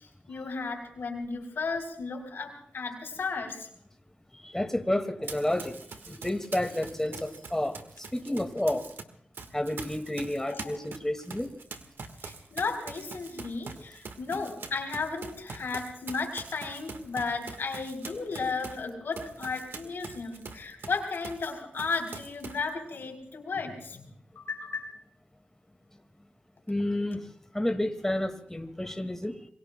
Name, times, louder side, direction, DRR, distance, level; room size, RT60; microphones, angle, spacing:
voice 1, 0.0-3.7 10.5-10.7 12.2-24.0 24.4-24.9, left 4 dB, 80° left, 3.8 m, -34 dB
voice 2, 4.3-8.9 9.5-11.5 18.8-19.0 26.7-29.5, left 1 dB, 10° left, 1.9 m, -31 dB
Run, 5.2-9.0 9.3-21.5 21.8-22.7, right 4 dB, 80° right, 1.5 m, -44 dB
27.5 x 22.0 x 2.2 m
cardioid pair, 45°, 4 cm